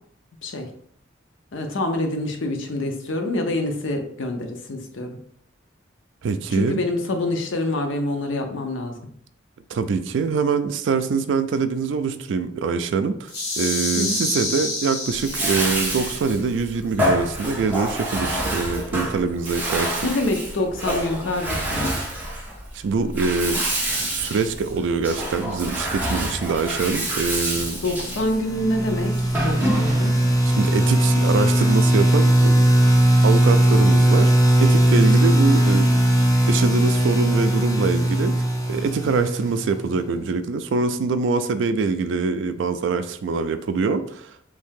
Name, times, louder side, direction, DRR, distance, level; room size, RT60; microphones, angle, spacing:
voice 1, 1.5-5.2 6.5-9.0 14.0-14.2 20.0-21.9 27.8-30.2, left 1 dB, 75° left, 5 dB, 0.6 m, -26 dB
voice 2, 6.2-6.8 9.7-20.0 22.8-23.6 24.1-27.8 30.5-32.7 33.2-34.3 34.6-35.9 36.5-44.4, right 4 dB, 70° right, 10 dB, 0.3 m, -24 dB
sound 1, 13.3-15.8, left 2 dB, 55° left, 0.9 m, -28 dB
Bathtub (filling or washing), 15.1-30.3, right 1 dB, 10° right, 1.1 m, -27 dB
sound 2, 28.1-39.9, right 1 dB, 20° left, 0.4 m, -18 dB
3.3 x 2.7 x 3.6 m, 0.65 s
head